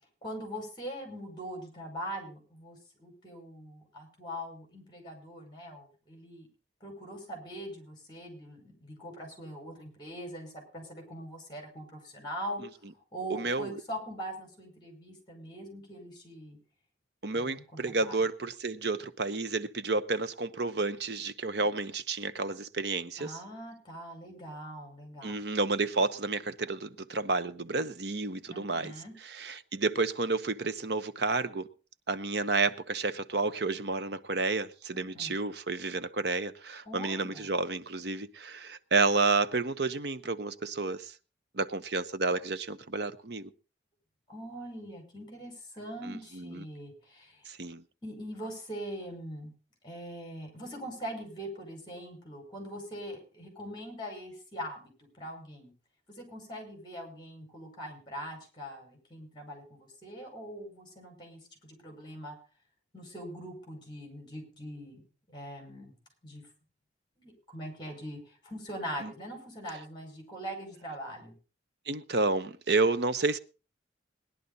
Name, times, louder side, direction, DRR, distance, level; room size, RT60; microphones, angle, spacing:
voice 1, 0.2-6.5 6.8-12.6 13.1-16.6 17.3-18.2 23.2-25.4 28.5-29.1 34.9-35.3 36.9-37.5 44.3-47.4 48.0-49.5 49.8-55.7 56.1-62.4 62.9-65.9 66.2-66.4 67.2-71.3, equal, 25° left, 5.5 m, -42 dB
voice 2, 13.3-13.7 17.2-23.4 25.2-28.9 29.4-31.7 32.1-41.1 41.5-43.5 46.1-46.6 47.5-47.8 69.0-69.1 71.9-73.4, right 3 dB, 60° right, 0.9 m, -30 dB
19.0 x 11.0 x 4.1 m
head